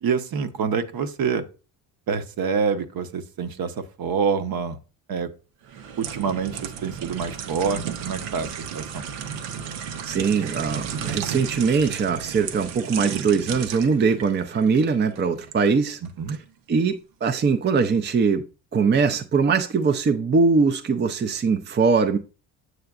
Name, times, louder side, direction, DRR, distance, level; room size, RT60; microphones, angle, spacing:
voice 1, 0.0-1.5 2.1-4.8 5.1-5.3 6.0-9.0 16.0-16.4, right 6 dB, 45° right, 0.9 m, -26 dB
sound 1, 5.6-15.6 16.0-16.2, right 8 dB, 90° right, 0.9 m, -34 dB
voice 2, 10.0-16.0 16.7-18.4 18.7-22.2, right 5 dB, 25° right, 0.5 m, -21 dB
7.9 x 6.6 x 2.4 m
supercardioid pair, 70°, 49 cm